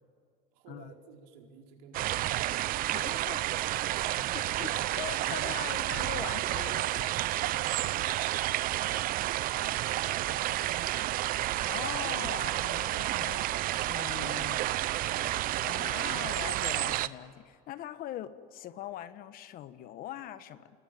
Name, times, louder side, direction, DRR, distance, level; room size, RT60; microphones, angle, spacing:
voice 1, 0.5-2.6 3.6-4.6 9.2-10.7 14.4-16.0, right 5 dB, 80° right, 1 dB, 4.6 m, -53 dB
sound 1, 1.9-17.1, right 15 dB, 50° right, 0.8 m, -30 dB
voice 2, 2.9-3.4 4.3-4.7 4.9-7.2 7.8-7.9 11.7-14.6 15.6-20.7, left 12 dB, 50° left, 12 dB, 1.4 m, -42 dB
30.0 x 21.0 x 9.1 m, 2.3 s
supercardioid pair, 115°, 19 cm